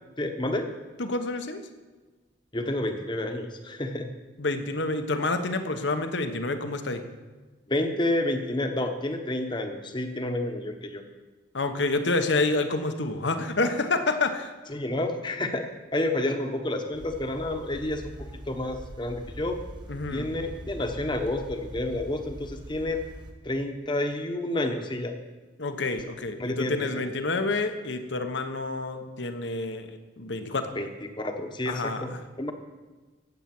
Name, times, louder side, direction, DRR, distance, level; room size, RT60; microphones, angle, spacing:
voice 1, 0.2-0.7 2.5-4.1 7.7-11.0 14.7-15.6 15.9-18.1 18.5-19.6 20.1-23.0 23.4-25.2 26.4-27.0 30.7-30.9 31.2-32.1 32.4-32.5, left 1 dB, 25° left, 6 dB, 1.1 m, -29 dB
voice 2, 1.0-1.6 4.4-7.0 11.5-14.5 19.9-20.3 25.6-30.7 31.7-32.2, left 3 dB, 70° left, 8 dB, 1.1 m, -28 dB
sound 1, 16.9-23.3, equal, 25° right, 1.2 m, -43 dB
15.5 x 8.0 x 6.1 m, 1.3 s
head